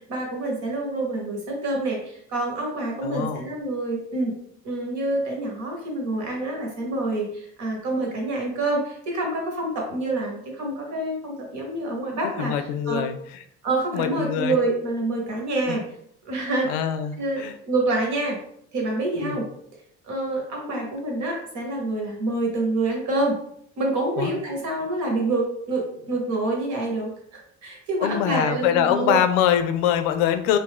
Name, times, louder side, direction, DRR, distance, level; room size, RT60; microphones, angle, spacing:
voice 1, 0.1-4.3 4.6-13.0 13.6-15.8 16.2-16.8 17.2-18.4 18.7-19.4 20.0-23.4 23.8-29.2, right 2 dB, 65° right, 0 dB, 1.3 m, -27 dB
voice 2, 3.0-3.4 12.2-13.2 13.9-14.6 15.7-15.8 16.7-17.5 19.2-19.4 24.2-24.3 28.0-30.6, left 10 dB, 85° left, 9 dB, 0.5 m, -23 dB
2.6 x 2.5 x 3.6 m, 0.69 s
supercardioid pair, 85°, 31 cm